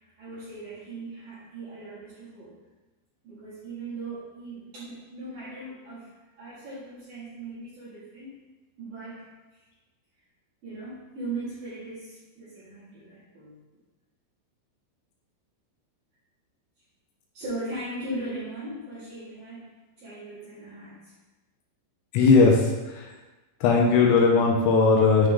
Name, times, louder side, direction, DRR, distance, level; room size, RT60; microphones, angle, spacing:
voice 1, 0.2-2.5 3.2-6.1 6.4-8.3 8.8-9.2 10.6-13.6 17.3-19.7 20.0-21.1, right 2 dB, 55° right, -13 dB, 3.0 m, -38 dB
voice 2, 22.1-23.1 23.6-25.3, left 4 dB, 80° left, -1 dB, 2.8 m, -19 dB
8.7 x 3.3 x 3.6 m, 1.2 s
omnidirectional pair, 5.5 m